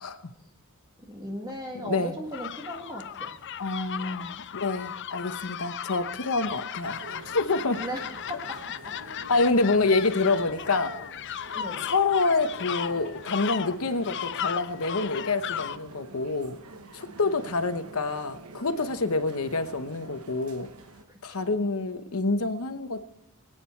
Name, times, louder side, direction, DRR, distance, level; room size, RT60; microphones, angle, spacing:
voice 1, 1.1-3.3 7.8-8.6 8.8-8.9 11.5-11.8 21.1-21.5, equal, 20° right, 1 dB, 1.7 m, -37 dB
voice 2, 1.8-2.2 3.6-7.8 9.3-10.9 11.9-16.6 16.9-20.7 21.2-23.0, left 3 dB, 70° left, 10 dB, 1.0 m, -27 dB
sound 1, 2.3-15.8, left 9 dB, 55° left, 0.5 m, -36 dB
sound 2, 6.8-21.0, right 3 dB, 75° right, 1.1 m, -47 dB
23.0 x 9.2 x 4.5 m, 0.86 s
head